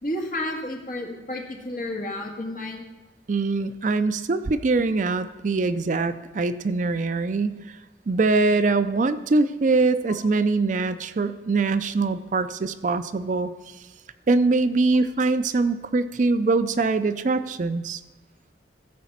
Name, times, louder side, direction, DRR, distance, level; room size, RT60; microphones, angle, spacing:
voice 1, 0.0-2.8, left 1 dB, 45° left, 0 dB, 1.8 m, -31 dB
voice 2, 3.3-7.8 8.1-13.5 14.3-18.0, right 3 dB, 45° right, 11 dB, 0.4 m, -23 dB
14.5 x 5.0 x 7.2 m, 1.2 s
head